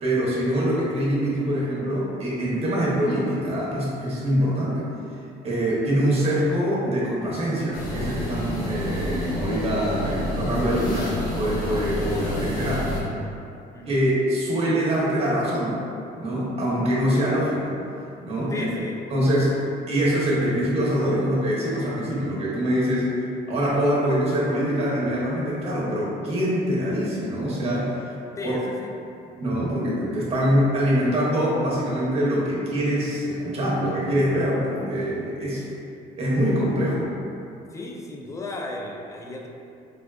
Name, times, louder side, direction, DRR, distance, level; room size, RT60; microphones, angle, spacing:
voice 1, 0.0-4.9 5.4-12.9 13.9-15.8 16.2-17.7 18.2-18.6 19.1-19.6 19.9-23.1 23.5-28.1 28.4-28.5 29.4-35.7 36.2-37.1, equal, 35° right, -6 dB, 0.7 m, -24 dB
sound 1, 7.7-13.0, left 1 dB, 55° left, 0.8 m, -29 dB
voice 2, 13.7-14.0 18.5-19.0 28.4-28.9 37.7-39.5, left 2 dB, 20° left, 0 dB, 0.3 m, -34 dB
3.5 x 2.3 x 2.3 m, 2.6 s
cardioid pair, 110°, 17 cm